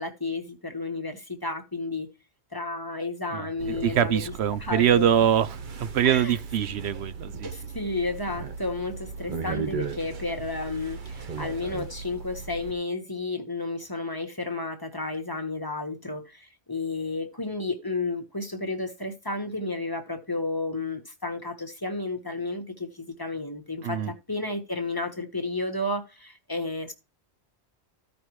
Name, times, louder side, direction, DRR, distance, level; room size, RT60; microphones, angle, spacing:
voice 1, 0.0-2.1 2.5-4.2 4.6-5.3 6.0-6.4 7.4-26.9, left 2 dB, 20° left, 1.3 m, -32 dB
sound 1, 3.6-12.7, right 5 dB, 50° right, 1.0 m, -37 dB
voice 2, 3.8-7.5 23.8-24.1, right 10 dB, 75° right, 0.9 m, -24 dB
14.5 x 5.2 x 3.1 m
omnidirectional pair, 1.1 m